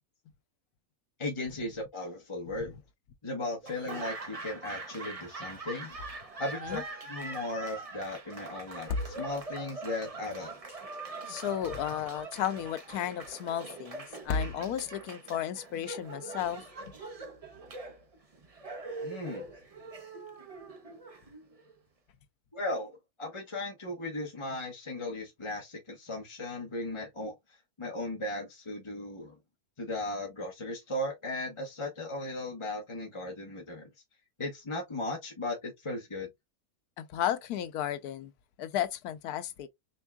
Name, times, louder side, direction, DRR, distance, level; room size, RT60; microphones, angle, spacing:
voice 1, 1.2-2.8 3.2-5.9 6.4-10.5 19.0-19.5 22.5-27.3 27.8-29.4 29.8-33.9 34.4-36.3, left 2 dB, 25° left, 0.8 m, -36 dB
Laughter / Applause, 3.6-21.7, right 3 dB, 30° right, 0.7 m, -43 dB
sound 1, 5.9-6.4 6.7-6.8 8.7-9.7 11.4-12.3 14.1-15.1, left 3 dB, 70° left, 0.7 m, -36 dB
voice 2, 11.3-16.7 37.0-38.3 38.6-39.7, left 11 dB, 85° left, 1.1 m, -34 dB
5.2 x 3.5 x 2.2 m
omnidirectional pair, 1.6 m